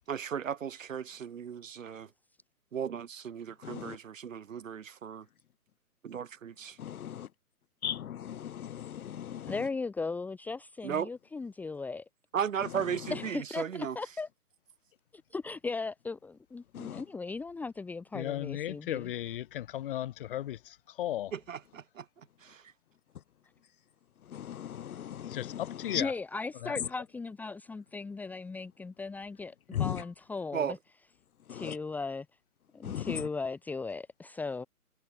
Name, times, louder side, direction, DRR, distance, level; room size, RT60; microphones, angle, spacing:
voice 1, 0.1-2.1 2.7-5.3 6.0-6.8 10.8-11.1 12.3-14.0 21.3-22.7 30.5-30.8, right 8 dB, 55° right, 6.0 m, -36 dB
voice 2, 6.8-7.3 7.8-9.5 16.8-17.0 24.3-25.6 25.9-26.0 29.8-29.9 32.9-33.0, left 9 dB, 65° left, 0.7 m, -37 dB
voice 3, 9.5-12.1 13.1-14.3 15.3-19.1 25.9-30.6 31.5-32.3 32.7-34.7, left 4 dB, 5° left, 2.0 m, -37 dB
voice 4, 18.1-20.6 21.0-21.3 25.3-26.1 26.6-26.7, left 13 dB, 35° left, 4.5 m, -35 dB
hypercardioid pair, 155°, 46 cm